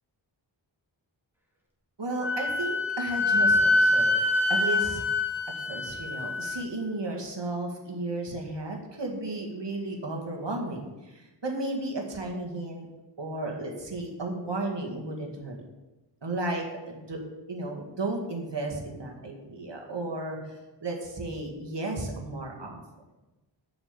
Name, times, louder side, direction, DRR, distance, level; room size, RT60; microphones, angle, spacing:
voice 1, 2.0-4.2 4.5-5.0 5.7-12.9 13.2-15.6 16.2-17.2 17.5-22.8, right 2 dB, 60° right, 0 dB, 2.1 m, -34 dB
Wind instrument woodwind instrument, 2.2-6.6, left 2 dB, 5° right, 2.4 m, -25 dB
7.1 x 6.2 x 7.4 m, 1.1 s
cardioid pair, 45°, 47 cm